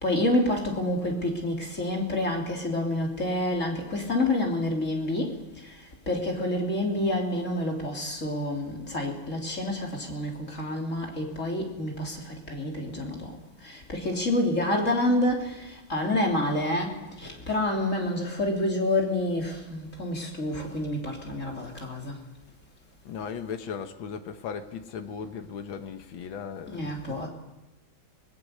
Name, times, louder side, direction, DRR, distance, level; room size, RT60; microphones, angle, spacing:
voice 1, 0.0-22.2 26.7-27.3, left 1 dB, 35° left, 3.6 m, -28 dB
voice 2, 23.1-27.3, left 6 dB, 75° left, 2.1 m, -37 dB
24.0 x 21.0 x 6.6 m
omnidirectional pair, 2.2 m